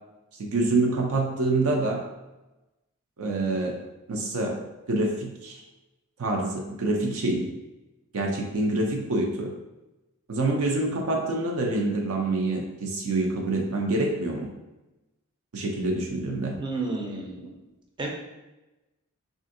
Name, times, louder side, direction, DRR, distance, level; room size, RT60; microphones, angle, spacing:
voice 1, 0.4-2.0 3.2-3.8 4.1-4.6 4.9-5.6 6.2-7.5 8.1-9.5 10.3-14.5 15.5-16.6, right 2 dB, 75° right, 0 dB, 0.5 m, -26 dB
voice 2, 16.5-17.5 18.0-18.1, right 3 dB, 20° right, 0 dB, 0.5 m, -31 dB
3.4 x 2.4 x 2.5 m, 1.0 s
head